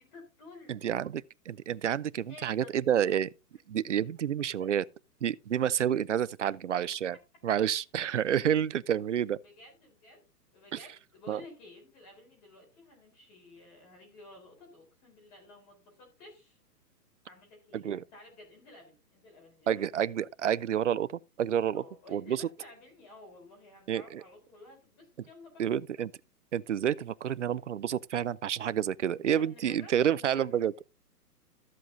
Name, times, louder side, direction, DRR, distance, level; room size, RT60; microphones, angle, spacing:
voice 1, 0.0-0.8 2.3-3.3 4.6-4.7 9.4-10.2 10.5-16.6 17.2-19.8 21.7-25.7 29.4-30.6, left 2 dB, 25° left, 3.9 m, -53 dB
voice 2, 0.7-3.3 3.7-4.8 5.2-7.2 7.4-9.4 11.3-11.4 17.7-18.0 19.7-21.8 22.1-22.5 23.9-24.2 25.6-26.1 26.5-30.7, right 9 dB, 50° right, 0.5 m, -29 dB
14.0 x 7.7 x 2.7 m
hypercardioid pair, 170°, 48 cm